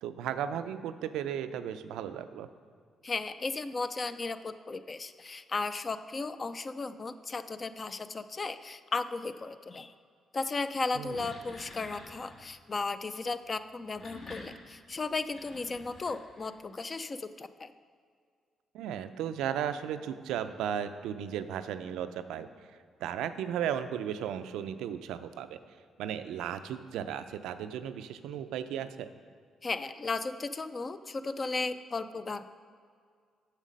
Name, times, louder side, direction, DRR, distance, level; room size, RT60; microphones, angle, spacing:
voice 1, 0.0-2.5 10.9-11.3 18.7-22.5 23.0-25.6 26.0-29.1, right 9 dB, 90° right, 11 dB, 0.4 m, -35 dB
voice 2, 3.0-9.9 10.3-17.7 29.6-32.4, left 3 dB, 35° left, 12 dB, 0.4 m, -35 dB
sound 1, 10.8-12.5 13.7-16.7, left 2 dB, 60° left, 1.6 m, -50 dB
7.4 x 6.5 x 5.2 m, 2.1 s
cardioid pair, 90°, 0 cm